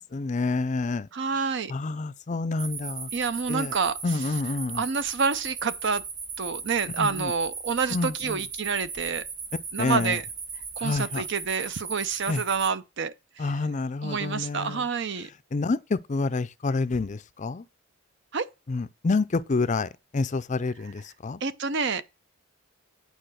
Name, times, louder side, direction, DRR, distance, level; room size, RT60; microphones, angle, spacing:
voice 1, 0.0-1.1 1.7-3.1 3.5-3.7 4.0-4.8 7.0-7.3 7.9-8.4 9.8-10.2 10.8-11.2 12.3-12.4 13.4-14.9 15.5-17.7 18.7-21.4, left 3 dB, 35° left, 0.5 m, -28 dB
voice 2, 1.1-1.7 3.1-4.3 4.7-6.0 6.4-9.2 9.7-10.2 10.8-13.6 14.0-15.3 18.3-18.5 21.4-22.0, right 5 dB, 55° right, 0.6 m, -28 dB
sound 1, 2.6-12.7, right 5 dB, 40° right, 2.4 m, -37 dB
9.0 x 4.8 x 6.2 m
head